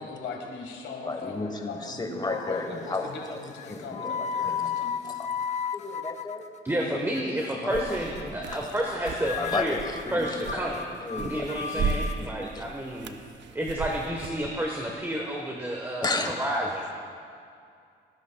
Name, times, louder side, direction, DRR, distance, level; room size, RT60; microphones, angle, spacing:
voice 1, 0.0-1.4 1.7-5.0, left 4 dB, 70° left, 1 dB, 1.7 m, -38 dB
voice 2, 1.1-3.4 3.7-4.7 5.0-5.5 5.7-6.4 7.3-7.4 7.6-8.0 8.3-8.4 9.4-10.6 11.0-11.5 11.7-12.6 16.0-16.3, left 2 dB, 20° left, 5 dB, 1.2 m, -33 dB
sound 1, 1.3-1.9 2.3-2.8 3.5-6.8 7.1-7.5 7.9-8.2 8.5-8.6 8.8-8.9 9.2-12.2, left 7 dB, 35° left, 0.4 m, -34 dB
voice 3, 6.6-9.8 10.1-10.8 11.1-13.2 13.5-17.0, right 1 dB, 10° right, -1 dB, 1.2 m, -30 dB
sound 2, 7.7-14.5, right 5 dB, 65° right, 0.6 m, -36 dB
18.5 x 10.5 x 2.3 m, 2.4 s
cardioid pair, 90°, 20 cm